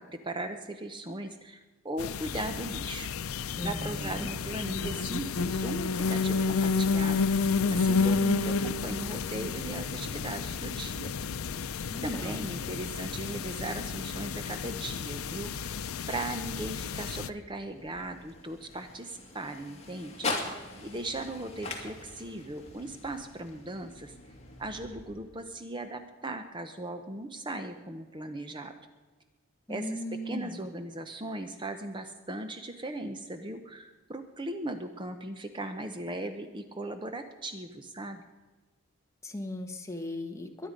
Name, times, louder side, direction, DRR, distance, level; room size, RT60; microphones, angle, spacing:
voice 1, 0.0-3.1 3.6-11.1 12.0-20.4 20.8-24.1 24.6-28.7 29.7-38.2, right 1 dB, 20° right, 7 dB, 0.8 m, -38 dB
sound 1, 2.0-17.3, left 4 dB, 90° left, 0.6 m, -31 dB
voice 2, 3.6-4.3 11.9-12.4 29.7-30.6 39.2-40.7, left 1 dB, 15° left, 4 dB, 1.3 m, -37 dB
sound 2, 17.3-25.5, left 2 dB, 30° left, 2.5 m, -41 dB
23.0 x 10.0 x 5.2 m, 1.3 s
head